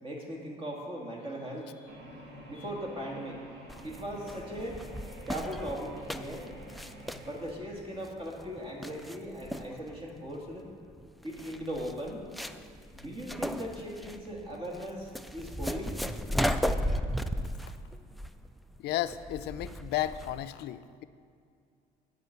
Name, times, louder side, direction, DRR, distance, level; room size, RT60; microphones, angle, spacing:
voice 1, 0.0-2.0 2.5-3.4 3.8-4.8 5.3-6.5 7.2-10.7 11.2-12.3 12.9-16.0, equal, 30° right, -1 dB, 2.0 m, -39 dB
sound 1, 1.9-7.4, right 1 dB, 75° right, 1.8 m, -49 dB
sound 2, 3.7-20.5, equal, ahead, 0.3 m, -36 dB
voice 2, 18.8-21.0, left 13 dB, 75° left, 12 dB, 0.5 m, -33 dB
10.5 x 4.9 x 8.0 m, 2.3 s
cardioid pair, 110°, 17 cm